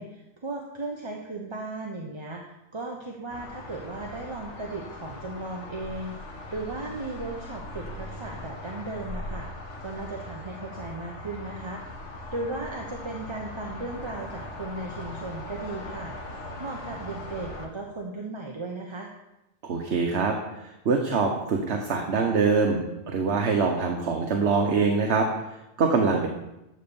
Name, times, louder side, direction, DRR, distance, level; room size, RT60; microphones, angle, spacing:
voice 1, 0.0-9.5 9.8-16.1 16.6-19.1, right 2 dB, 25° right, 0 dB, 0.9 m, -36 dB
sound 1, 3.3-17.7, left 2 dB, 85° left, 1.6 m, -40 dB
voice 2, 19.6-22.8 23.1-26.3, right 4 dB, 70° right, 2 dB, 1.2 m, -24 dB
12.5 x 4.3 x 6.9 m, 0.94 s
omnidirectional pair, 1.2 m